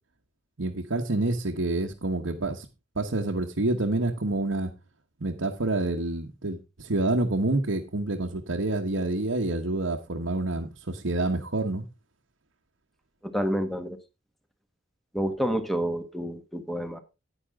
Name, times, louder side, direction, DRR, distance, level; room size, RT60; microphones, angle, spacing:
voice 1, 0.6-2.7 2.9-4.7 5.2-11.8, right 2 dB, 85° right, 1.2 m, -28 dB
voice 2, 13.2-14.0 15.1-17.0, equal, ahead, 1.2 m, -29 dB
10.0 x 10.0 x 3.6 m
head